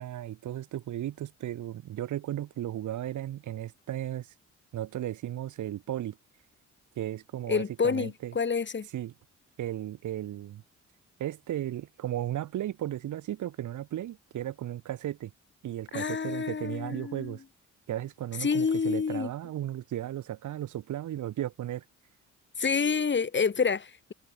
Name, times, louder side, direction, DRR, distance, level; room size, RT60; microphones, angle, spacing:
voice 1, 0.0-4.3 4.7-6.2 7.0-8.3 8.9-9.1 9.6-10.6 11.2-15.3 15.6-17.4 17.9-21.8, right 12 dB, 75° right, 5.7 m, -35 dB
voice 2, 7.5-8.9 15.9-17.4 18.4-19.3 22.6-24.1, left 5 dB, 40° left, 5.0 m, -28 dB
cardioid pair, 90°, 30 cm